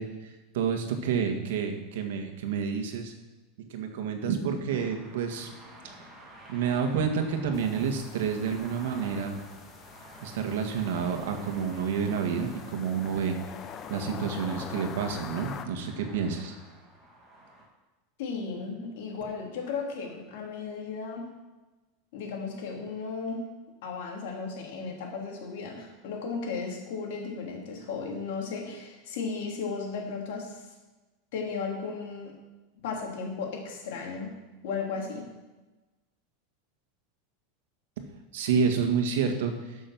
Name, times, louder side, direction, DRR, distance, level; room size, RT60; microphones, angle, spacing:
voice 1, 0.0-3.1 3.7-5.5 5.8-6.0 6.5-9.3 10.2-13.4 13.9-16.5 38.3-39.5, right 6 dB, 75° right, 5 dB, 1.8 m, -29 dB
sound 1, 4.7-17.6, right 1 dB, 15° right, 2.9 m, -50 dB
sound 2, 7.5-15.7, left 8 dB, 30° left, 0.8 m, -44 dB
voice 2, 18.2-21.3 22.1-23.4 23.8-30.6 31.3-32.3 32.8-34.3 34.6-35.3, left 5 dB, 70° left, 0 dB, 3.2 m, -35 dB
12.5 x 6.5 x 6.1 m, 1.1 s
supercardioid pair, 150°, 0 cm